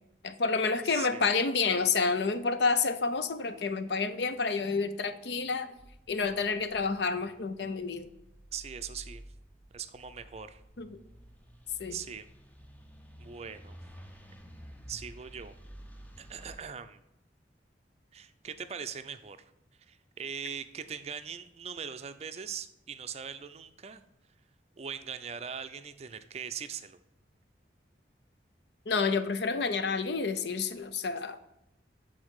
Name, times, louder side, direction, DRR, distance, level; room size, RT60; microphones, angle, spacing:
voice 1, 0.2-5.7 6.1-8.1 10.8-11.0 11.8-12.0 28.9-31.4, left 4 dB, 70° left, 10 dB, 0.6 m, -29 dB
voice 2, 0.8-1.3 8.5-9.2 9.7-10.6 11.9-12.3 13.2-13.8 14.9-15.5 16.2-17.0 18.1-19.5 19.9-24.0 24.8-27.0, right 7 dB, 35° right, 11 dB, 0.4 m, -41 dB
sound 1, 5.8-16.6, equal, 10° left, 0.6 m, -52 dB
8.5 x 3.9 x 4.7 m, 0.85 s
head